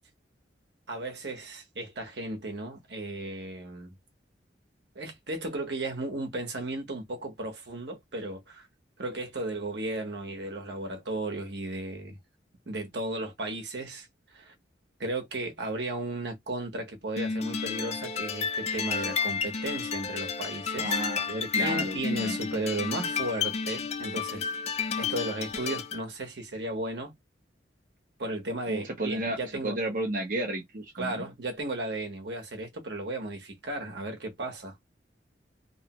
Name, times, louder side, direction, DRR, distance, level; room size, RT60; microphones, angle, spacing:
voice 1, 0.9-3.9 4.9-8.7 9.0-12.2 12.7-14.1 14.3-14.5 15.0-24.5 25.0-27.1 28.2-29.8 31.0-34.8, right 2 dB, 70° right, 1.1 m, -35 dB
sound 1, 17.2-26.0, left 5 dB, 35° left, 0.4 m, -31 dB
voice 2, 20.8-21.3 21.5-22.4 28.7-31.3, right 1 dB, 50° right, 0.7 m, -32 dB
3.0 x 2.2 x 2.9 m
head